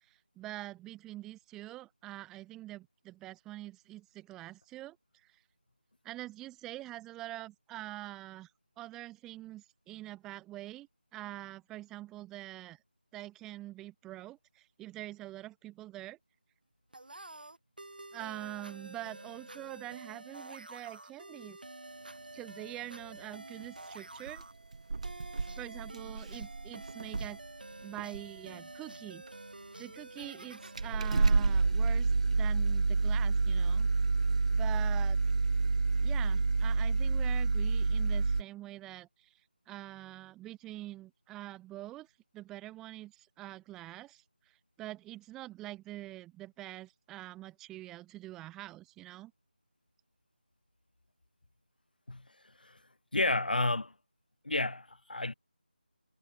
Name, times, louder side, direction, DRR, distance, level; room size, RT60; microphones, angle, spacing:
voice 1, 0.1-5.0 5.2-5.4 6.0-8.5 8.8-12.8 13.1-16.2 18.1-21.6 22.3-24.4 25.6-27.4 27.8-29.2 29.8-33.9 34.5-35.2 36.0-39.3 39.7-42.1 42.3-49.3, right 16 dB, 5° right, 2.5 m, -45 dB
sound 1, 16.9-32.4, right 2 dB, 65° right, 5.8 m, -49 dB
sound 2, 23.6-23.8 24.3-24.4 24.7-27.5 28.0-28.4 29.3-29.4 30.2-30.3 30.8-38.4, right 4 dB, 45° right, 2.1 m, -28 dB
voice 2, 53.1-53.9 54.4-55.3, left 2 dB, 65° left, 3.0 m, -31 dB
figure-of-eight pair, 160°, 5 cm